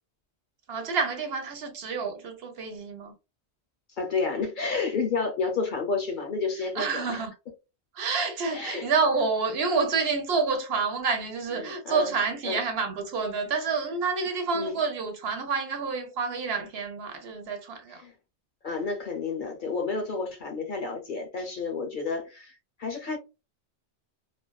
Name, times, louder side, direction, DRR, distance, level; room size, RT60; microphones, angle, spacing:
voice 1, 0.7-3.1 6.8-7.3 8.0-18.0, right 4 dB, 65° right, 0.9 m, -28 dB
voice 2, 4.0-7.2 8.5-8.9 11.5-12.1 12.4-12.6 14.5-14.8 17.9-18.1 18.6-23.2, left 4 dB, 50° left, 0.8 m, -31 dB
2.5 x 2.2 x 2.2 m
omnidirectional pair, 1.1 m